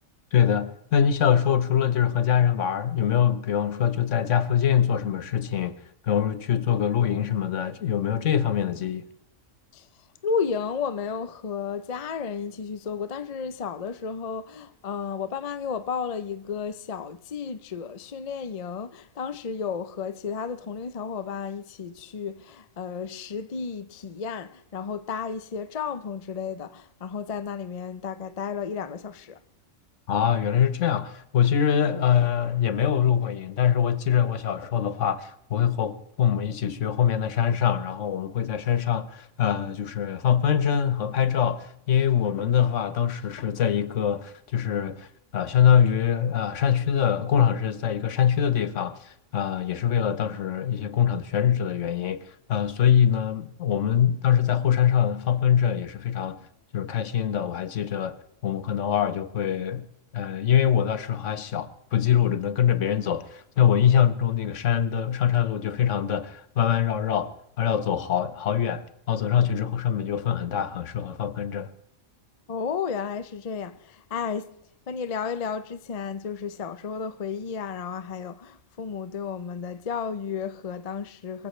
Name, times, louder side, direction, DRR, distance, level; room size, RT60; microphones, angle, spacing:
voice 1, 0.3-5.8 6.0-9.0 30.1-56.4 56.7-58.2 58.4-59.9 60.1-71.7, left 9 dB, 70° left, 1.2 m, -24 dB
voice 2, 10.2-29.4 72.5-74.5 74.9-81.5, left 6 dB, 40° left, 0.6 m, -33 dB
23.0 x 15.5 x 3.2 m
omnidirectional pair, 1.4 m